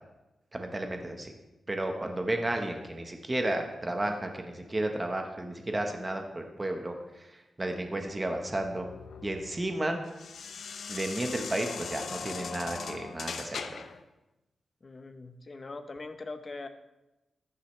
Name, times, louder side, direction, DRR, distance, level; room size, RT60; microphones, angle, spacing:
voice 1, 0.5-1.3 1.7-7.3 7.6-8.9 9.2-10.0 10.9-13.8, right 1 dB, 20° right, 4 dB, 1.2 m, -33 dB
sound 1, 8.2-14.0, left 5 dB, 70° left, 0.8 m, -40 dB
voice 2, 14.8-16.7, left 3 dB, 30° left, 8 dB, 0.8 m, -41 dB
15.0 x 11.5 x 3.3 m, 1.0 s
wide cardioid pair, 150°, 0 cm